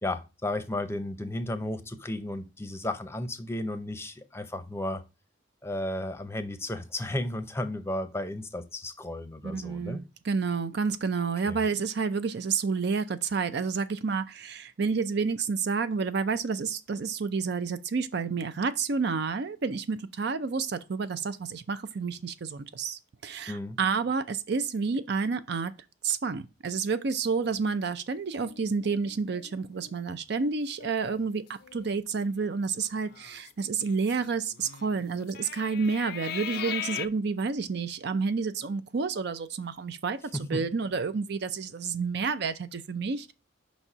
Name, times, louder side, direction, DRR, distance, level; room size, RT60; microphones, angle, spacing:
voice 1, 0.0-5.0 5.6-10.0 11.4-11.6 23.5-23.8 40.3-40.6, left 1 dB, 15° left, 0.6 m, -34 dB
voice 2, 9.4-25.7 26.0-43.3, right 5 dB, 60° right, 0.5 m, -30 dB
sound 1, 28.3-30.0 30.4-30.5 30.8-31.2 31.6-31.9 32.8-37.1, left 10 dB, 55° left, 0.5 m, -40 dB
5.4 x 4.2 x 5.9 m
head